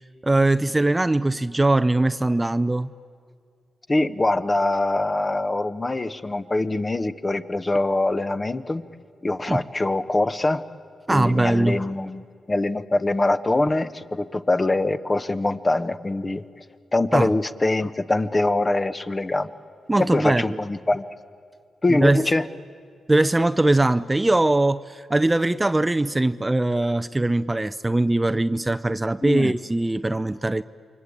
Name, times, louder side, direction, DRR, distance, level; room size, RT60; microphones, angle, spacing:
voice 1, 0.2-2.9 9.5-9.6 11.1-11.8 17.1-17.3 19.9-20.6 21.9-22.2 23.1-30.6, right 2 dB, 20° right, 0.6 m, -21 dB
voice 2, 3.9-8.8 9.2-10.6 11.1-16.4 16.9-19.5 20.0-21.0 21.8-22.4 29.2-29.5, left 2 dB, 25° left, 1.1 m, -23 dB
28.5 x 23.5 x 8.8 m
cardioid pair, 75°, 0 cm